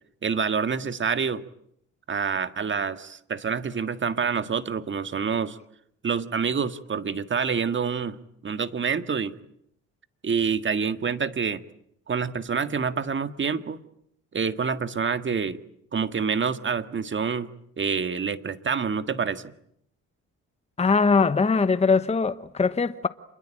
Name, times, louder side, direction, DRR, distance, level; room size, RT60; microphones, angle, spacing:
voice 1, 0.2-1.4 2.1-5.6 6.0-8.2 8.4-9.3 10.2-11.6 12.1-13.8 14.3-15.6 15.9-19.4, right 6 dB, 40° right, 1.8 m, -27 dB
voice 2, 20.8-23.1, left 4 dB, 20° left, 1.0 m, -21 dB
28.0 x 22.0 x 9.0 m
cardioid pair, 90°, 30 cm